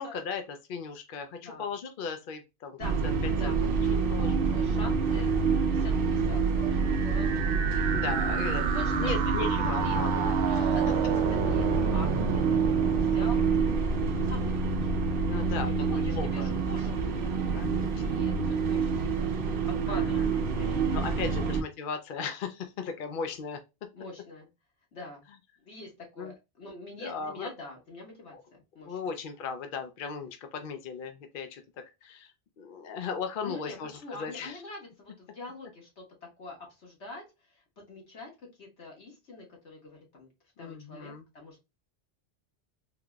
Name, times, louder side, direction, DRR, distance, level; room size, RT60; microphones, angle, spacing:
voice 1, 0.0-3.1 3.4-3.5 3.9-4.8 7.9-8.6 9.0-10.7 15.2-16.5 17.5-18.5 19.8-20.4 20.9-23.6 26.2-26.3 27.0-27.5 28.3-28.4 28.8-31.6 32.0-34.6 40.6-41.2, left 5 dB, 60° left, 7 dB, 0.6 m, -37 dB
sound 1, 2.8-21.6, right 5 dB, 60° right, 0.8 m, -27 dB
voice 2, 4.5-5.3 5.7-7.5 8.3-9.2 9.8-10.2 10.7-12.4 12.7-17.3 17.6-20.9 21.3-21.5 23.9-24.5 24.9-25.3 25.6-29.1 33.4-36.0 36.4-40.3 40.6-41.6, left 2 dB, 75° left, -1 dB, 1.7 m, -45 dB
sound 2, 6.7-14.7, right 7 dB, 85° right, 0.9 m, -33 dB
3.8 x 2.9 x 2.3 m, 0.25 s
omnidirectional pair, 1.2 m